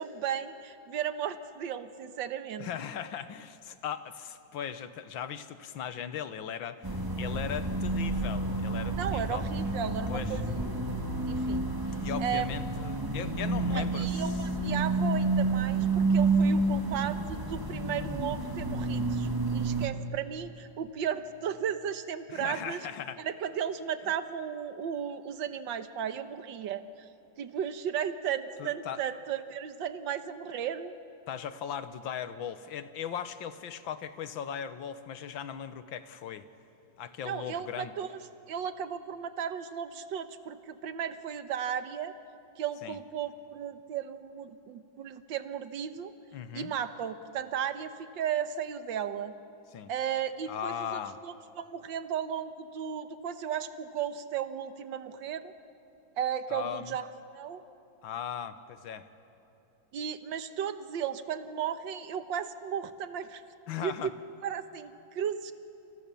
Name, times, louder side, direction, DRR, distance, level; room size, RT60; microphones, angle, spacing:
voice 1, 0.0-2.7 9.0-10.4 11.3-11.7 12.2-12.6 13.7-22.8 23.2-27.1 27.4-30.9 37.3-38.2 38.5-42.1 42.6-46.1 46.5-49.3 49.9-55.5 56.2-57.1 57.3-57.6 59.9-63.4 63.8-64.1 64.4-65.5, right 8 dB, 70° right, 10 dB, 1.8 m, -35 dB
voice 2, 2.6-9.4 10.1-10.4 12.0-14.3 22.3-23.2 28.6-29.0 31.3-36.5 37.0-37.9 42.8-43.0 46.3-46.7 49.7-49.9 50.5-51.2 56.5-57.0 58.0-59.1 63.7-64.1, left 8 dB, 80° left, 11 dB, 1.8 m, -38 dB
sound 1, 6.8-19.9, right 2 dB, 10° right, 1.8 m, -29 dB
29.5 x 28.5 x 7.1 m, 3.0 s
omnidirectional pair, 2.1 m